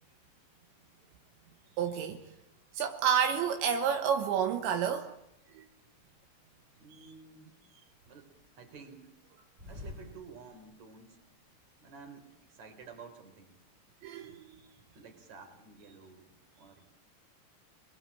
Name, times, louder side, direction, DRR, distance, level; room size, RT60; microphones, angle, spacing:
voice 1, 1.8-2.3 2.7-5.1 5.6-5.7 14.0-14.6, right 8 dB, 75° right, 3.5 m, -30 dB
sound 1, 5.3-6.2 6.7-7.6 7.8-11.0 11.2-11.3 11.5-12.3, left 2 dB, 10° right, 3.1 m, -50 dB
voice 2, 6.8-7.6 8.1-9.1 9.7-11.2 11.8-13.5 14.9-16.3 16.6-16.9, right 5 dB, 40° right, 4.7 m, -52 dB
26.5 x 22.0 x 8.6 m
omnidirectional pair, 5.3 m